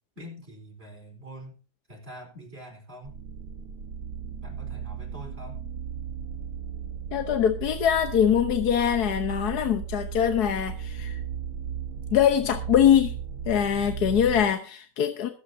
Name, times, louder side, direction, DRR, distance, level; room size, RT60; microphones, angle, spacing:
voice 1, 0.2-1.6 1.9-3.2 4.4-5.6, equal, 40° right, 0 dB, 4.7 m, -44 dB
sound 1, 3.0-14.4, right 7 dB, 85° right, 1.8 m, -36 dB
voice 2, 7.1-11.2 12.1-13.2 13.5-15.3, left 9 dB, 80° left, 6 dB, 1.5 m, -23 dB
22.0 x 8.6 x 2.7 m, 0.39 s
omnidirectional pair, 1.7 m